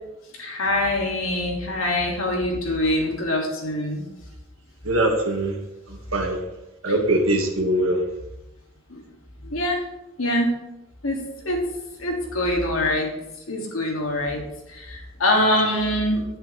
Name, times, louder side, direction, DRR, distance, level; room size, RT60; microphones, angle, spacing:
voice 1, 0.4-4.0 8.9-9.0 9.4-9.8 10.2-10.5 11.0-11.7 12.0-13.1 13.5-14.4 14.7-16.2, left 1 dB, 85° left, 0 dB, 1.9 m, -24 dB
voice 2, 4.8-5.6 5.9-6.4 6.8-8.0, right 1 dB, 85° right, 2 dB, 1.4 m, -22 dB
8.3 x 7.7 x 3.1 m, 0.95 s
head